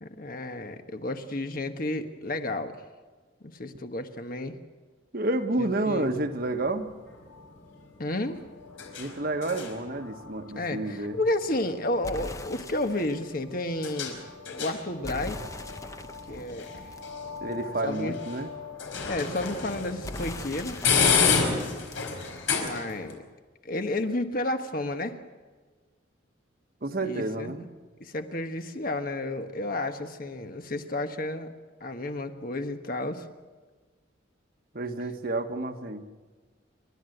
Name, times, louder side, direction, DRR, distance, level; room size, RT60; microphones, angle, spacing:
voice 1, 0.0-2.7 3.5-4.6 5.6-6.1 8.0-8.4 10.5-14.2 14.6-15.4 16.3-16.9 17.8-18.2 19.1-20.8 22.5-23.2 23.6-25.2 27.0-27.7 28.0-31.5 31.8-33.2, left 2 dB, 45° left, 7 dB, 1.4 m, -31 dB
voice 2, 5.1-6.9 9.0-11.2 17.4-18.5 26.8-27.6 34.7-36.1, right 2 dB, 50° right, 7 dB, 1.4 m, -30 dB
sound 1, 5.7-23.1, left 5 dB, 80° left, 4.9 m, -32 dB
sound 2, 12.0-13.3 15.0-17.8 20.0-22.8, left 1 dB, 15° left, 0.7 m, -41 dB
29.5 x 13.0 x 8.0 m, 1.4 s
head